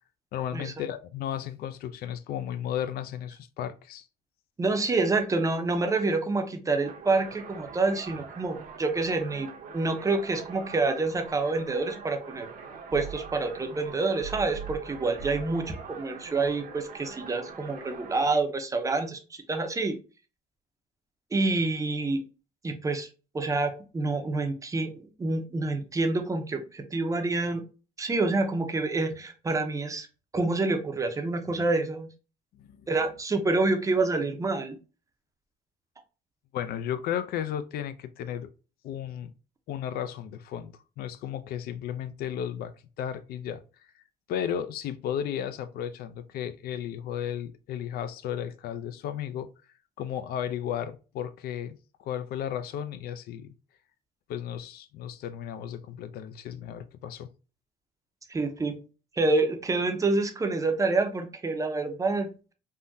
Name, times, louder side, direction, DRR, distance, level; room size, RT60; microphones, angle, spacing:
voice 1, 0.3-4.0 32.5-32.9 36.5-38.5 38.8-39.3 39.7-42.7 43.0-43.6 44.3-49.5 50.0-53.5 54.3-57.3, left 9 dB, 65° left, 0.4 m, -34 dB
voice 2, 4.6-12.5 12.9-20.0 21.3-22.3 22.6-23.1 23.3-27.6 28.0-30.1 30.3-32.1 32.9-34.8 58.3-58.8 59.2-62.5, right 3 dB, 20° right, 0.5 m, -27 dB
sound 1, 6.8-18.4, right 6 dB, 55° right, 0.7 m, -43 dB
3.6 x 2.1 x 2.6 m
cardioid pair, 110°, 17 cm